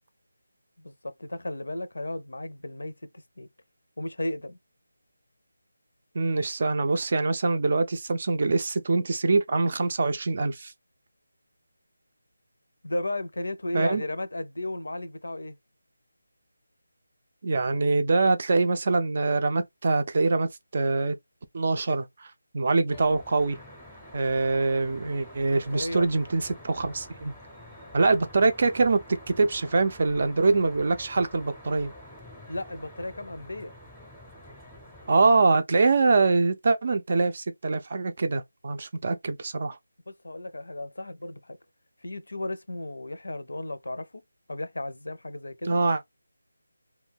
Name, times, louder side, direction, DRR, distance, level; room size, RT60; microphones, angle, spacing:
voice 1, 0.8-2.9 3.4-3.5 4.0-4.6 12.8-15.6 25.5-26.1 32.5-33.7 40.1-41.6 42.0-44.1 44.5-45.8, left 1 dB, 80° left, 0.5 m, -34 dB
voice 2, 6.1-10.7 13.7-14.0 17.4-21.2 21.5-22.3 22.5-23.6 24.1-27.3 27.9-29.0 29.3-31.9 35.1-39.8 45.7-46.0, right 3 dB, 40° right, 0.4 m, -24 dB
Traffic noise roadway noise, 22.9-35.3, left 1 dB, ahead, 0.6 m, -47 dB
2.2 x 2.2 x 3.4 m
figure-of-eight pair, 170°, 0 cm